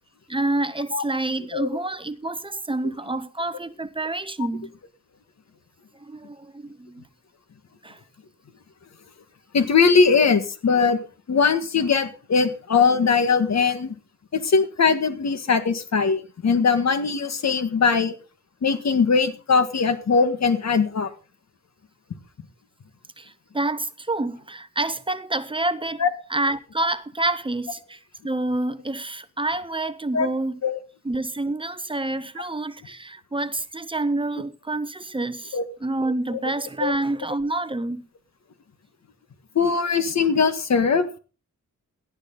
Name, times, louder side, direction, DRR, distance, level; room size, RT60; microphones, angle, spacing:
voice 1, 0.3-4.7 6.0-7.0 7.8-8.0 23.2-26.0 26.3-28.0 28.2-30.6 31.0-38.1, right 2 dB, 15° right, 0.8 m, -28 dB
voice 2, 9.5-11.0 11.3-13.9 14.3-18.2 18.6-21.1 26.0-26.1 30.1-30.3 30.6-30.8 35.5-35.6 36.3-36.5 36.8-36.9 39.6-41.1, left 5 dB, 60° left, 1.9 m, -20 dB
17.5 x 11.5 x 4.0 m
wide cardioid pair, 165°, 31 cm